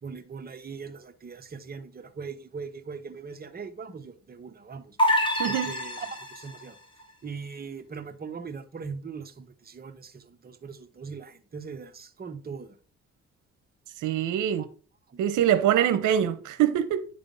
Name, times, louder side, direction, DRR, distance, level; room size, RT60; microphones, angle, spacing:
voice 1, 0.0-5.0 5.5-6.8 7.2-12.7 15.8-15.9, right 5 dB, 30° right, 1.0 m, -40 dB
sound 1, 5.0-6.6, left 1 dB, 15° left, 2.1 m, -26 dB
voice 2, 5.4-5.8 14.0-14.7 15.2-17.1, right 10 dB, 85° right, 0.8 m, -24 dB
10.0 x 3.4 x 5.4 m
cardioid pair, 90°, 30 cm